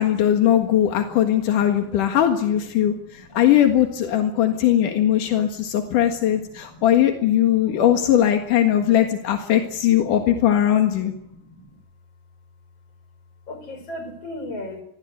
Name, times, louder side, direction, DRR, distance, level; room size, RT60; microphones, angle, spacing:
voice 1, 0.0-11.1, left 11 dB, 85° left, 4 dB, 3.3 m, -19 dB
voice 2, 2.8-3.4 4.4-4.6 4.9-5.0 5.2-5.9 6.6-6.8 7.5-7.8 10.6-10.7 11.0-11.7 13.5-14.8, left 1 dB, 50° left, 8 dB, 6.5 m, -39 dB
25.0 x 21.0 x 8.2 m, 0.76 s
omnidirectional pair, 3.6 m